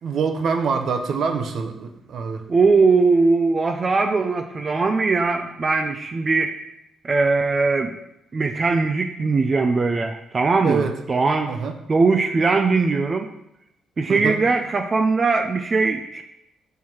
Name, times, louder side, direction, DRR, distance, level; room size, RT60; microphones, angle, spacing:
voice 1, 0.0-2.4 10.6-10.9 11.5-11.7 14.1-14.4, right 5 dB, 65° right, 5 dB, 0.8 m, -25 dB
voice 2, 2.5-6.6 7.0-8.0 8.3-11.5 11.9-13.3 14.0-16.2, right 4 dB, 35° right, 5 dB, 0.5 m, -20 dB
5.6 x 4.6 x 4.5 m, 0.84 s
cardioid pair, 90°, 0 cm